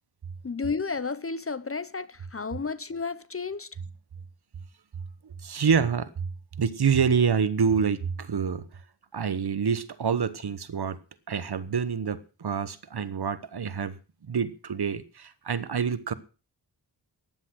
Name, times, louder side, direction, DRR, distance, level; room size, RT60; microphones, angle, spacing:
voice 1, 0.4-3.7, left 4 dB, 30° left, 0.8 m, -32 dB
voice 2, 5.2-6.3 6.6-8.6 9.1-11.0 11.3-14.0 14.2-16.1, right 6 dB, 60° right, 1.2 m, -27 dB
15.0 x 10.5 x 6.3 m
wide cardioid pair, 105°, 43 cm